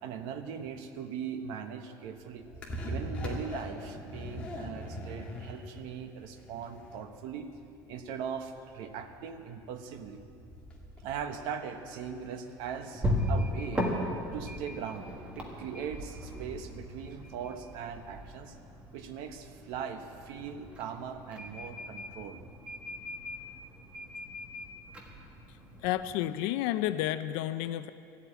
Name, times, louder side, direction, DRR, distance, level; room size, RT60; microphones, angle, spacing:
voice 1, 0.0-2.4 2.9-7.5 7.9-10.3 11.0-13.9 14.3-18.6 18.9-22.4, right 7 dB, 65° right, 7 dB, 1.1 m, -40 dB
sound 1, 2.2-11.3, left 1 dB, 15° left, 1.8 m, -41 dB
sound 2, 11.7-26.1, equal, 15° right, 1.5 m, -38 dB
voice 2, 25.5-27.9, left 13 dB, 80° left, 11 dB, 0.5 m, -31 dB
14.0 x 8.4 x 9.1 m, 2.7 s
cardioid pair, 180°, 8 cm